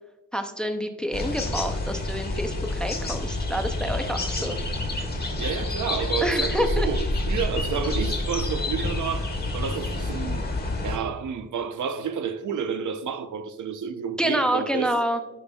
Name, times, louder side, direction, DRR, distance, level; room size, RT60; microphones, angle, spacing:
voice 1, 0.3-4.6 6.2-6.9 14.2-15.2, right 1 dB, 5° left, 0.5 m, -27 dB
sound 1, 1.1-11.0, left 2 dB, 30° left, 1.4 m, -28 dB
voice 2, 5.4-7.0 7.3-10.5 10.8-14.9, right 7 dB, 70° right, 0.7 m, -30 dB
14.5 x 5.3 x 2.3 m
wide cardioid pair, 175°, 32 cm